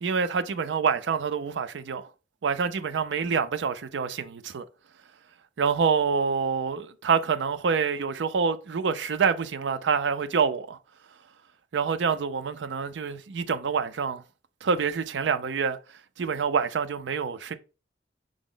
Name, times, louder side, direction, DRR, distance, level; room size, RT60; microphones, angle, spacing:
voice 1, 0.0-2.0 2.4-4.7 5.6-10.8 11.7-14.2 14.6-15.8 16.2-17.5, right 6 dB, 85° right, 0.4 m, -26 dB
4.9 x 2.1 x 3.7 m
head